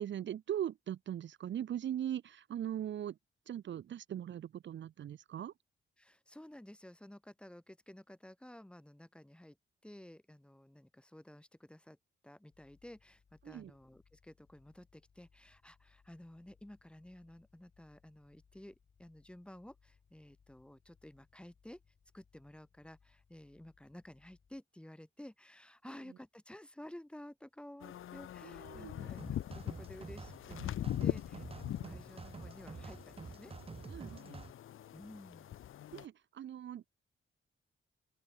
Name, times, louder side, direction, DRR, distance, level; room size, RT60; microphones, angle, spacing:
voice 1, 0.0-3.2 3.5-5.5 13.4-13.7 28.4-29.1 31.6-32.0 33.9-34.4 35.9-36.8, right 10 dB, 65° right, 0.8 m, -40 dB
voice 2, 6.0-9.6 9.8-12.0 12.2-21.8 22.1-33.5 34.9-35.5, left 1 dB, 5° left, 2.9 m, -53 dB
sound 1, 12.5-24.6, left 6 dB, 40° left, 3.9 m, -70 dB
sound 2, 27.8-36.0, left 11 dB, 85° left, 1.0 m, -42 dB
sound 3, 29.2-34.5, right 4 dB, 30° right, 1.8 m, -49 dB
open air
wide cardioid pair, 155°, 21 cm